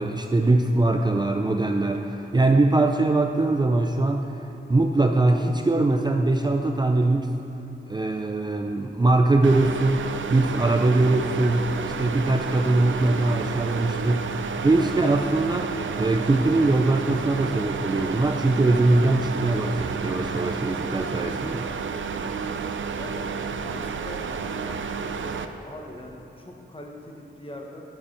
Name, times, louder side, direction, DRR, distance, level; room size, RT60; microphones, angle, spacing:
voice 1, 0.0-4.3 4.7-7.3 7.9-21.7, right 2 dB, 20° right, 4 dB, 0.4 m, -22 dB
sound 1, 9.4-25.5, right 5 dB, 90° right, 0.5 m, -31 dB
voice 2, 22.1-22.6 23.0-27.9, left 1 dB, 30° left, 1 dB, 1.2 m, -42 dB
14.5 x 6.9 x 4.5 m, 2.7 s
wide cardioid pair, 110°, 19 cm